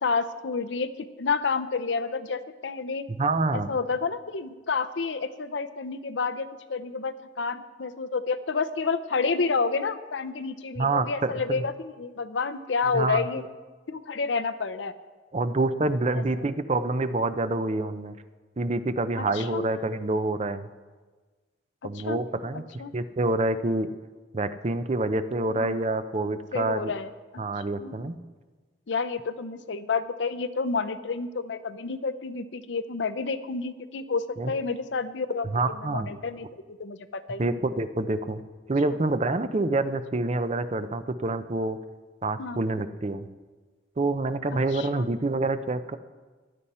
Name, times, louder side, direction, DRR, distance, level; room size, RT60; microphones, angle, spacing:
voice 1, 0.0-3.1 3.5-13.4 13.9-14.9 16.1-16.2 19.2-19.7 21.8-22.2 22.8-22.9 25.5-25.8 26.5-27.1 27.8-28.1 28.9-37.6 38.9-39.0 42.4-42.6 44.5-45.1, left 4 dB, 80° left, 10 dB, 0.7 m, -30 dB
voice 2, 3.1-3.7 10.8-11.6 12.9-13.2 15.3-18.2 18.6-20.7 21.8-22.6 22.9-23.9 24.3-26.9 27.4-28.2 34.4-34.5 35.5-36.1 37.4-38.4 38.7-41.8 42.2-43.3 44.0-46.0, right 2 dB, 35° right, 11 dB, 0.5 m, -27 dB
15.5 x 11.5 x 4.3 m, 1.4 s
head